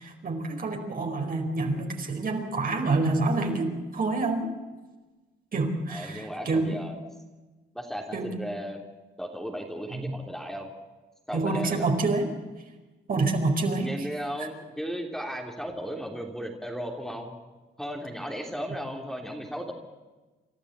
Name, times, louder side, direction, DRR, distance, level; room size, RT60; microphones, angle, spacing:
voice 1, 0.0-4.5 5.5-6.8 8.1-8.4 9.9-10.1 11.3-12.3 13.1-13.9, right 3 dB, 45° right, 3 dB, 4.6 m, -27 dB
voice 2, 5.9-7.0 7.7-8.8 9.2-10.7 11.3-11.9 13.8-17.4 17.8-19.7, equal, ahead, 0 dB, 3.3 m, -35 dB
29.0 x 13.0 x 8.3 m, 1.2 s
cardioid pair, 90°, 20 cm